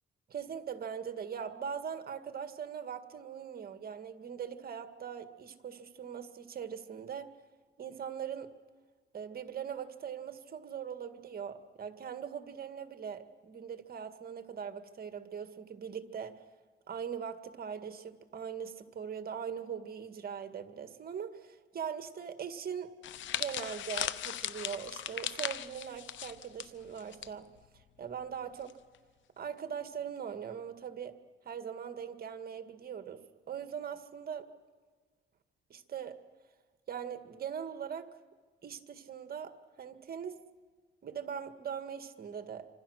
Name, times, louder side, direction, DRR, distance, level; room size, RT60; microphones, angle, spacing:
voice 1, 0.3-7.3 7.8-8.5 9.1-16.4 16.9-22.9 23.3-27.5 28.0-28.7 29.4-31.2 31.4-33.2 33.5-34.5 35.7-36.2 36.9-38.1 38.6-40.4 41.0-42.7, right 7 dB, 50° right, 9 dB, 1.9 m, -41 dB
sound 1, 23.0-27.3 27.6-27.8 28.7-29.0, left 11 dB, 75° left, 1.0 m, -38 dB
27.0 x 25.5 x 6.5 m, 1.4 s
cardioid pair, 90°, 20 cm